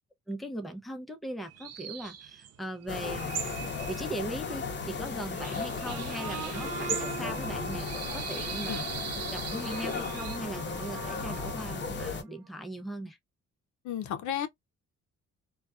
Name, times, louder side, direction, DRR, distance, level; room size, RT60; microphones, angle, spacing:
voice 1, 0.3-3.4 3.9-8.9 9.3-13.2, right 1 dB, ahead, 0.5 m, -39 dB
sound 1, 1.5-10.4, right 8 dB, 55° right, 0.5 m, -41 dB
sound 2, 2.9-12.2, left 5 dB, 40° left, 0.7 m, -35 dB
sound 3, 5.6-12.6, right 8 dB, 75° right, 0.9 m, -43 dB
voice 2, 13.8-14.5, left 10 dB, 75° left, 0.5 m, -32 dB
2.3 x 2.2 x 2.4 m
cardioid pair, 90°, 30 cm